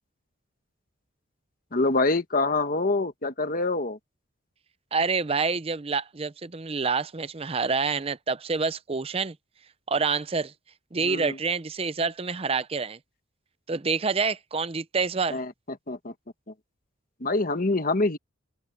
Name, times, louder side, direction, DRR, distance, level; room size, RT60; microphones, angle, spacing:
voice 1, 1.7-4.0 11.0-11.4 15.3-15.5 15.9-16.1 17.2-18.2, left 2 dB, 40° left, 1.4 m, -25 dB
voice 2, 4.9-9.4 9.9-10.5 10.9-13.0 13.7-15.4, right 4 dB, 30° right, 0.6 m, -27 dB
open air
head